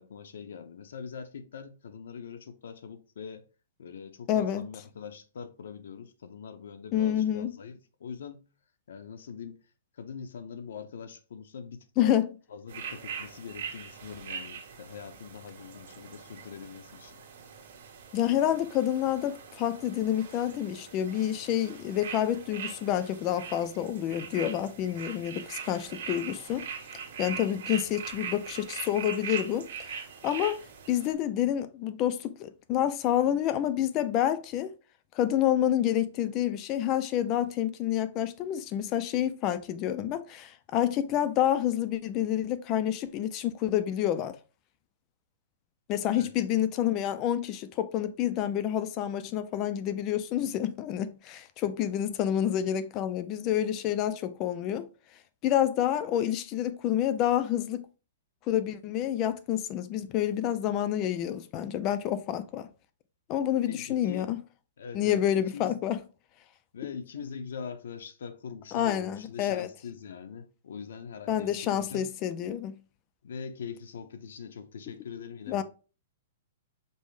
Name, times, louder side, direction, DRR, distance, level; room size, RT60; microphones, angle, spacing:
voice 1, 0.0-3.4 3.8-8.4 8.9-9.6 9.9-12.1 12.5-17.2 46.2-46.3 63.6-64.3 64.8-65.2 65.5-65.7 66.7-72.1 73.2-75.6, left 6 dB, 75° left, 0.6 m, -43 dB
voice 2, 4.3-4.7 6.9-7.5 12.0-12.3 18.1-26.7 27.2-30.6 30.9-34.7 35.1-44.4 45.9-54.9 55.4-57.9 58.5-62.7 63.3-64.4 64.9-66.0 68.7-69.7 71.3-72.7 75.5-75.6, left 11 dB, 20° left, 0.3 m, -28 dB
sound 1, 12.7-31.1, right 7 dB, 55° right, 1.5 m, -41 dB
5.3 x 2.0 x 4.7 m
hypercardioid pair, 175°, 0 cm